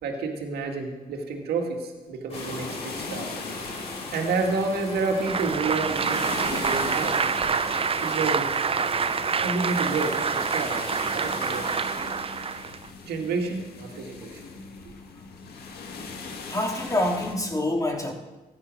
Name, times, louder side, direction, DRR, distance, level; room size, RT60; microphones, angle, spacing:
voice 1, 0.0-3.3 4.1-7.1 8.0-8.5 9.4-11.7 13.0-14.4, right 4 dB, 85° right, 2 dB, 2.1 m, -29 dB
sound 1, 2.3-17.3, left 4 dB, 80° left, 1.9 m, -39 dB
sound 2, 2.3-11.8, left 1 dB, 40° left, 4.6 m, -39 dB
Applause, 5.1-12.9, right 6 dB, 35° right, 0.5 m, -27 dB
voice 2, 16.5-18.1, left 1 dB, 20° left, 2 dB, 2.9 m, -26 dB
15.0 x 10.5 x 6.3 m, 1.2 s
supercardioid pair, 55°, 16 cm